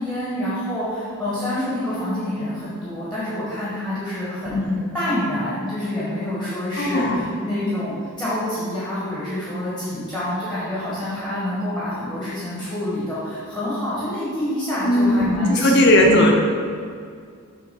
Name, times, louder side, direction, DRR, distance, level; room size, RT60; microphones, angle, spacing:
voice 1, 0.0-4.6 4.9-16.1, left 1 dB, 5° left, -10 dB, 1.3 m, -27 dB
voice 2, 4.4-4.8 6.8-7.2 14.8-16.3, left 1 dB, 50° left, 1 dB, 0.8 m, -17 dB
6.7 x 3.5 x 5.3 m, 2.2 s
head